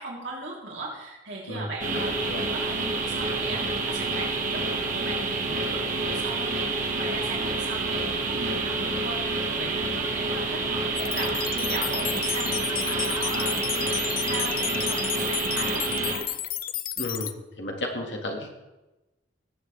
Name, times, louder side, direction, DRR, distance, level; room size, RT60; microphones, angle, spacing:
voice 1, 0.0-16.3, right 2 dB, 75° right, -4 dB, 3.3 m, -38 dB
voice 2, 1.5-2.4 17.0-17.3 17.6-18.5, left 1 dB, 75° left, 1 dB, 1.9 m, -33 dB
sound 1, 1.8-16.1, right 3 dB, 45° right, 1.6 m, -28 dB
sound 2, 11.0-17.3, left 12 dB, 50° left, 0.5 m, -32 dB
19.0 x 7.8 x 3.4 m, 1.0 s
head